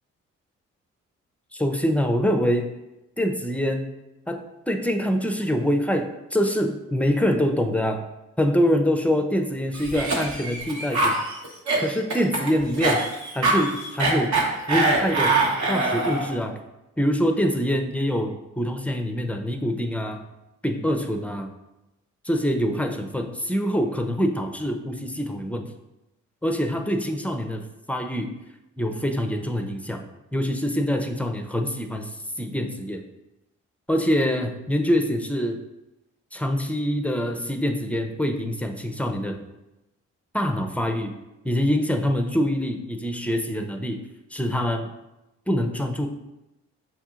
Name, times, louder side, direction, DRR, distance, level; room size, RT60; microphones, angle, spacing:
voice 1, 1.5-2.8 3.2-3.9 4.3-8.0 8.4-11.2 11.8-13.0 13.3-14.4 14.7-15.4 15.7-16.6 17.0-20.2 20.6-21.5 22.2-25.7 26.4-28.4 28.8-30.0 30.3-33.0 33.9-35.6 36.3-39.4 40.3-41.1 41.4-44.0 44.3-44.9 45.5-46.1, equal, 5° left, 5 dB, 0.5 m, -25 dB
Cough, 9.7-16.3, right 2 dB, 55° right, 1.0 m, -23 dB
5.6 x 2.6 x 2.4 m, 0.96 s
hypercardioid pair, 40°, 34 cm